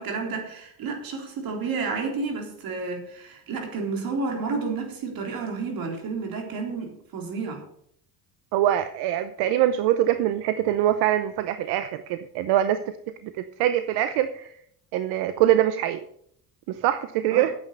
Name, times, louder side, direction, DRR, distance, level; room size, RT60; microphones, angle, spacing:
voice 1, 0.0-7.6 17.3-17.5, right 4 dB, 65° right, 2 dB, 3.7 m, -31 dB
voice 2, 8.5-13.0 13.2-14.5 14.9-16.0 16.7-17.5, right 12 dB, 90° right, 11 dB, 0.7 m, -23 dB
9.5 x 8.0 x 6.7 m, 0.69 s
cardioid pair, 110°, 38 cm